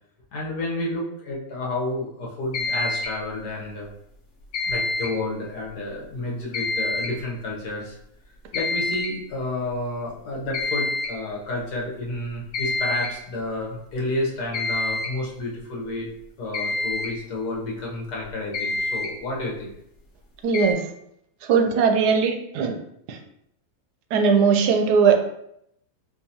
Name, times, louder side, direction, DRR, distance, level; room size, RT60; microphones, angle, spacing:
voice 1, 0.3-3.9 4.7-8.0 8.5-16.1 16.4-19.7, left 2 dB, 85° left, -3 dB, 1.6 m, -30 dB
sound 1, 2.5-3.2 4.5-5.2 6.5-7.2 8.5-9.2 10.5-11.2 12.5-13.2 14.5-15.2 16.5-17.1 18.2-18.3 18.5-19.1 20.5-20.7, left 2 dB, 65° left, 1.2 m, -27 dB
voice 2, 20.4-20.8 21.5-22.7 23.1-23.2 24.1-25.2, right 6 dB, 85° right, 4 dB, 1.2 m, -19 dB
4.6 x 2.9 x 2.8 m, 0.75 s
omnidirectional pair, 1.7 m